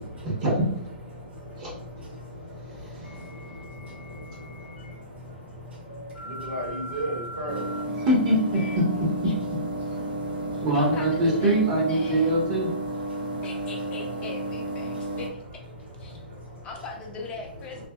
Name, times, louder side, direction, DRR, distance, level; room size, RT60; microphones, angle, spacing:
voice 1, 0.2-0.9 1.6-1.7 2.6-3.5 8.0-9.1 10.6-12.7, right 1 dB, 35° right, -3 dB, 0.9 m, -24 dB
voice 2, 1.1-8.1 8.7-8.8 9.7-10.7 13.1-15.2 15.7-16.8 17.7-17.9, equal, 80° right, -3 dB, 1.3 m, -39 dB
sound 1, 3.0-4.9 5.9-9.9, equal, 90° left, 0.4 m, -42 dB
sound 2, 7.5-15.3, right 1 dB, 55° right, 0.5 m, -32 dB
voice 3, 8.5-8.8 10.5-11.6 11.9-12.3 13.4-15.6 16.0-16.2 16.6-17.9, left 3 dB, 15° left, 0 dB, 0.5 m, -40 dB
2.7 x 2.5 x 2.3 m, 0.69 s
hypercardioid pair, 155°, 6 cm